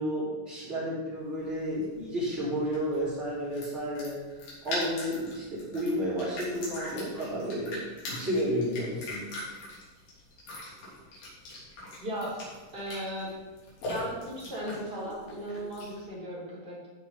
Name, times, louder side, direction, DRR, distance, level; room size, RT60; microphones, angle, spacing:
voice 1, 0.0-4.2 4.6-9.3, equal, 35° right, -13 dB, 4.6 m, -31 dB
sound 1, 1.2-16.1, left 1 dB, 90° left, 5.0 m, -42 dB
voice 2, 12.0-12.3 12.7-13.3 13.9-16.9, equal, 15° right, -7 dB, 3.3 m, -36 dB
15.0 x 6.2 x 4.0 m, 1.3 s
omnidirectional pair, 4.1 m